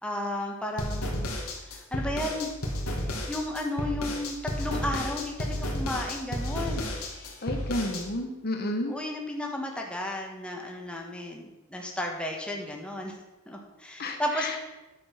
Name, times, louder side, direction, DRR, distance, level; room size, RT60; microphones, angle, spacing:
voice 1, 0.0-1.3 1.7-2.5 3.0-6.9 8.9-13.1 13.5-14.7, left 1 dB, 5° left, 0 dB, 1.4 m, -33 dB
sound 1, 0.8-8.0, left 1 dB, 75° left, 2.0 m, -32 dB
voice 2, 7.4-9.0 14.0-14.6, left 1 dB, 45° left, 4 dB, 1.1 m, -31 dB
10.0 x 7.1 x 5.7 m, 1.0 s
head